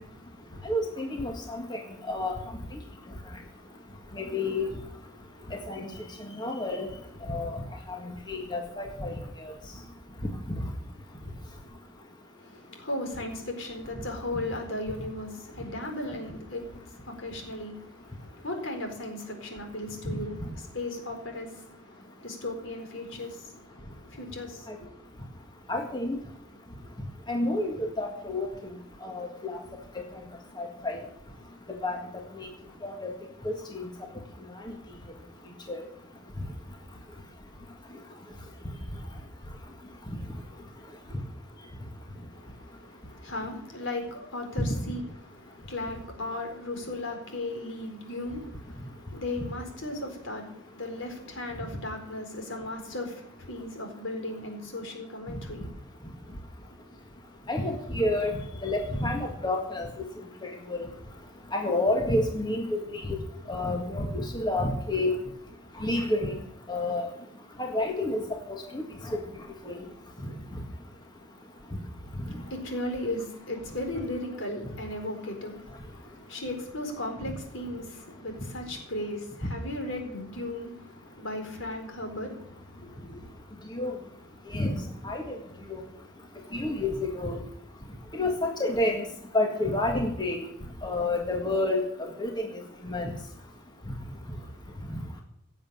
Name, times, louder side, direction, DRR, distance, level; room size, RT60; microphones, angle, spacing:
voice 1, 0.6-2.4 4.2-4.7 5.5-5.9 6.4-6.9 7.3-7.6 7.9-8.0 8.3-9.1 9.4-9.5 20.1-20.2 25.7-26.2 27.3-28.5 29.0-29.6 30.6-31.0 31.8-32.0 32.4-32.5 32.8-33.1 33.4-33.8 35.7-35.8 44.6-44.7 57.5-59.9 60.4-60.9 61.5-63.2 63.5-65.2 65.8-66.4 66.7-67.1 67.6-68.2 68.5-69.2 69.7-69.8 79.4-79.5 83.8-83.9 84.5-84.7 85.0-85.4 85.7-85.8 86.5-87.4 88.1-89.0 89.3-90.4 90.8-92.5 92.8-93.1, left 2 dB, 20° left, 1.8 m, -29 dB
voice 2, 12.3-24.9 42.3-45.0 45.3-55.6 72.3-83.3, left 1 dB, 70° left, 4.4 m, -36 dB
17.0 x 7.7 x 8.8 m
head